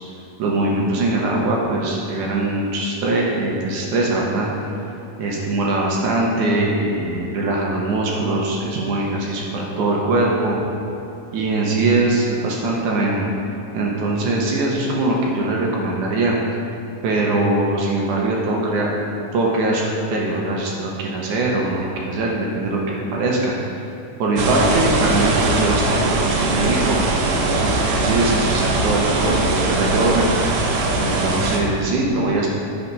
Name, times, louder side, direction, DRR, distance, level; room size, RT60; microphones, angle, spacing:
voice 1, 0.4-4.5 5.2-10.6 11.3-13.3 13.7-16.4 17.0-19.0 19.3-23.5 24.2-30.3 31.0-32.5, right 2 dB, 70° right, -2 dB, 2.0 m, -21 dB
sound 1, 24.4-31.6, right 2 dB, 90° right, 1.5 m, -21 dB
10.5 x 4.3 x 5.3 m, 3.0 s
omnidirectional pair, 4.3 m